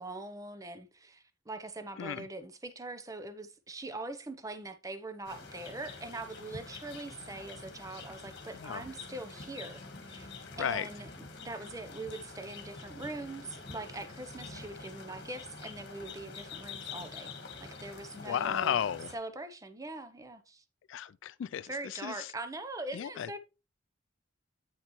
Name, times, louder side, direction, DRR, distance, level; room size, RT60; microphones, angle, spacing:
voice 1, 0.0-10.3 10.6-11.1 11.4-18.8 19.1-20.6 21.7-23.4, right 2 dB, 15° right, 0.6 m, -42 dB
sound 1, 5.2-19.1, left 4 dB, 55° left, 1.4 m, -47 dB
voice 2, 10.6-10.9 18.2-19.1 20.9-22.3 22.9-23.3, left 9 dB, 70° left, 0.3 m, -34 dB
8.8 x 5.7 x 3.0 m
head